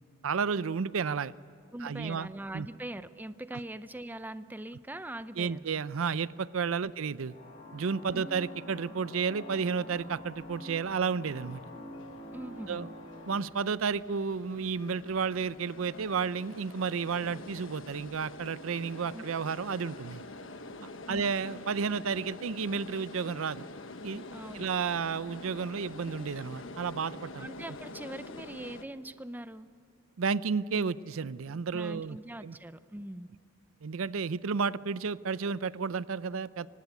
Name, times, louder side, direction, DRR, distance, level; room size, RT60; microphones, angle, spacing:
voice 1, 0.2-1.3 1.8-2.7 5.4-7.3 7.7-11.6 12.7-12.9 13.3-20.2 21.1-23.7 24.0-24.2 24.5-27.5 30.2-32.6 33.8-36.7, right 5 dB, 85° right, 17 dB, 0.5 m, -32 dB
voice 2, 1.7-5.7 6.8-6.9 8.1-8.2 12.3-12.9 19.1-19.2 21.1-21.2 24.3-24.7 27.4-29.7 31.7-33.3, right 1 dB, 10° right, 13 dB, 0.6 m, -42 dB
sound 1, 7.2-13.4, left 1 dB, 40° left, 6.5 m, -46 dB
sound 2, 9.8-28.8, left 2 dB, 65° left, 1.2 m, -47 dB
24.5 x 19.0 x 8.3 m, 2.5 s
head